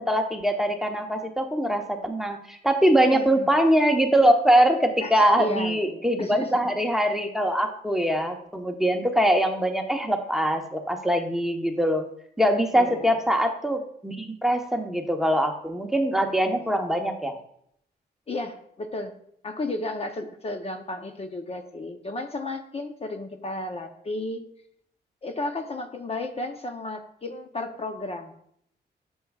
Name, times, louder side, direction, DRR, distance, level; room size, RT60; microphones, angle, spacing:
voice 1, 0.1-12.0 12.4-17.3, equal, ahead, 4 dB, 1.0 m, -23 dB
voice 2, 3.1-3.5 5.0-6.6 12.8-13.1 16.3-16.7 18.3-19.1 19.4-24.4 25.2-28.3, left 2 dB, 35° left, 5 dB, 0.8 m, -33 dB
10.0 x 7.1 x 2.4 m, 0.70 s
cardioid pair, 90°, 18 cm